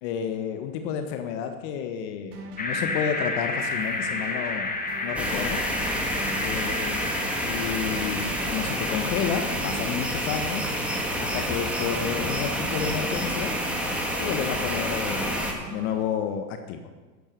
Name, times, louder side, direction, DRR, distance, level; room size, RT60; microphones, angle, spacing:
voice 1, 0.0-5.6 6.4-7.2 7.4-10.7 11.2-13.5 14.2-16.8, left 8 dB, 55° left, 7 dB, 1.4 m, -31 dB
sound 1, 2.3-16.0, right 4 dB, 80° right, 1.8 m, -43 dB
sound 2, 2.6-10.8, left 3 dB, 20° left, 1.9 m, -32 dB
sound 3, 5.2-15.5, equal, 5° right, 2.5 m, -29 dB
11.0 x 9.8 x 6.7 m, 1.3 s
hypercardioid pair, 95°, 44 cm